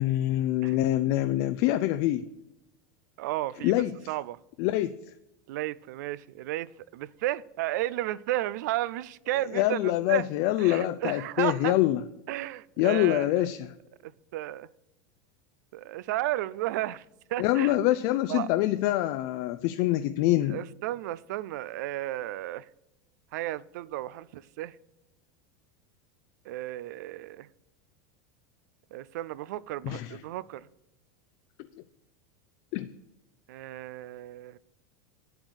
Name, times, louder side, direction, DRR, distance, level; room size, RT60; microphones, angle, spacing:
voice 1, 0.0-2.2 3.6-3.9 4.6-5.0 9.5-12.0 12.8-13.7 17.4-20.6 29.8-30.2 32.7-32.9, left 15 dB, 45° left, 0.5 m, -25 dB
voice 2, 3.2-3.8 4.1-4.4 5.5-10.3 10.6-11.7 12.3-13.3 14.0-14.7 15.7-17.0 17.3-17.8 18.3-18.5 20.5-22.7 23.3-24.8 26.5-27.5 28.9-30.7 33.5-34.6, right 15 dB, 70° right, 0.5 m, -33 dB
8.9 x 7.9 x 6.3 m
supercardioid pair, 165°, 10 cm